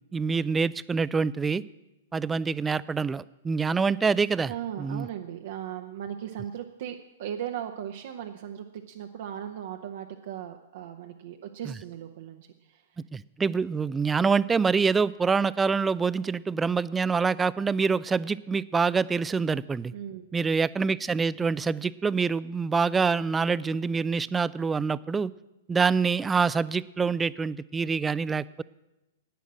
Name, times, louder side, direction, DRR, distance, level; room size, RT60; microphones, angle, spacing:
voice 1, 0.0-1.6 2.1-4.5 4.8-5.1 13.1-19.9 20.3-25.3 25.7-28.4, right 5 dB, 15° right, 19 dB, 0.3 m, -26 dB
voice 2, 4.5-12.8 19.9-20.3, right 10 dB, 55° right, 4 dB, 0.8 m, -37 dB
11.0 x 9.3 x 7.5 m, 0.97 s
figure-of-eight pair, 105°, 0 cm